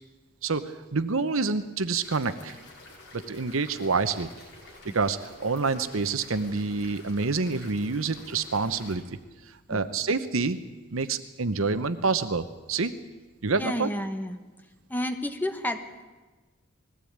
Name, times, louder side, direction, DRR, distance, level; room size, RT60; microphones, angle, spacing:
voice 1, 0.4-2.6 3.1-4.3 4.9-9.2 9.7-10.6 10.9-12.9 13.4-13.9, right 4 dB, 70° right, 11 dB, 0.9 m, -27 dB
sound 1, 2.0-9.0, left 2 dB, 55° left, 4.8 m, -50 dB
voice 2, 13.6-14.4 14.9-16.0, left 1 dB, 10° left, 7 dB, 1.1 m, -31 dB
20.5 x 16.0 x 8.7 m, 1.3 s
head